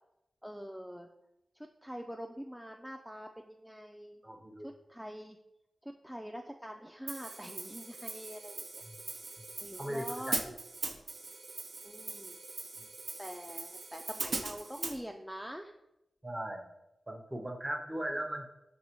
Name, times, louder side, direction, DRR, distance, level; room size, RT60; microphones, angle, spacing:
voice 1, 0.4-1.1 1.5-4.2 4.6-5.4 5.8-9.2 9.6-10.3 11.8-12.4 13.2-15.8, equal, 5° right, 3 dB, 0.3 m, -45 dB
voice 2, 4.2-4.7 8.9-9.0 9.8-10.5 12.8-12.9 16.2-16.7 17.1-18.5, right 1 dB, 20° right, 3 dB, 0.7 m, -38 dB
Hi-hat, 7.1-15.0, right 3 dB, 70° right, 0.4 m, -40 dB
5.5 x 3.0 x 2.9 m, 0.88 s
cardioid pair, 50°, 0 cm